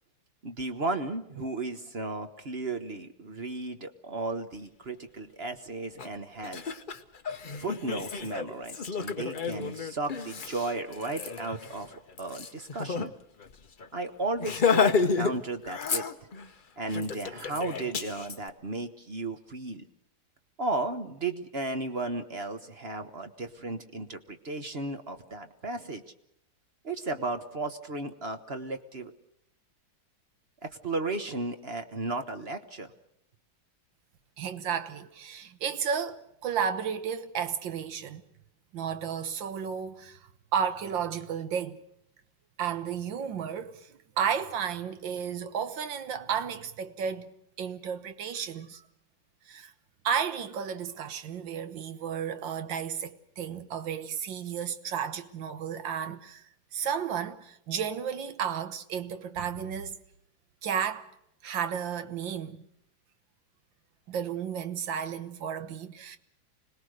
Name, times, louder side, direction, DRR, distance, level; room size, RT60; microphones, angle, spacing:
voice 1, 0.4-6.7 7.6-11.9 12.2-13.1 13.9-16.1 16.8-19.9 20.6-26.0 26.8-29.1 30.6-32.9, right 2 dB, 40° right, 1.2 m, -34 dB
Laughter, 6.0-6.1 6.4-13.1 13.4-13.5 13.8-14.0 14.4-15.4 15.6-16.5 16.9-18.4, left 5 dB, 40° left, 0.8 m, -31 dB
voice 2, 34.4-38.2 38.7-41.8 42.6-48.8 49.5-49.7 50.0-56.4 56.7-60.0 60.6-61.1 61.4-62.6 64.1-66.2, right 7 dB, 80° right, 1.9 m, -33 dB
25.5 x 20.0 x 6.5 m
omnidirectional pair, 2.0 m